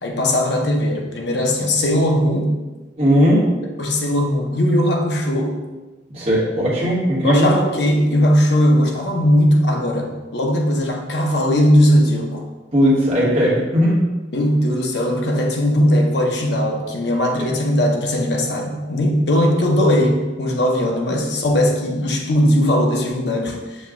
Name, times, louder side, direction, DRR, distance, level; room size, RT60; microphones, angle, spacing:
voice 1, 0.0-2.5 3.8-5.6 7.2-12.4 14.3-23.8, equal, 70° left, 1 dB, 0.7 m, -18 dB
voice 2, 3.0-3.4 6.1-7.5 12.7-14.0 17.4-17.5, equal, 35° right, -6 dB, 1.2 m, -17 dB
6.3 x 2.3 x 3.6 m, 1.2 s
head